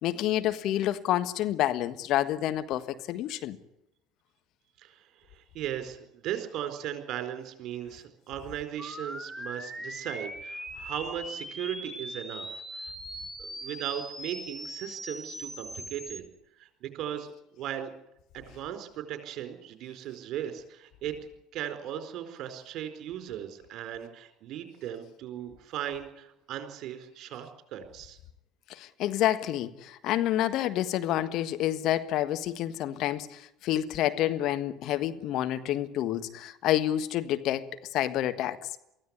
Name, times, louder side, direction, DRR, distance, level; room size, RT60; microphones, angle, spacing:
voice 1, 0.0-3.6 28.7-38.7, left 13 dB, 55° left, 10 dB, 1.5 m, -28 dB
voice 2, 4.8-12.9 13.4-16.2 16.6-17.9 18.3-21.1 21.5-28.2, right 10 dB, 50° right, 7 dB, 4.5 m, -37 dB
sound 1, 8.8-16.2, right 1 dB, 5° right, 2.5 m, -40 dB
23.5 x 15.5 x 9.7 m, 0.84 s
figure-of-eight pair, 65°, 0 cm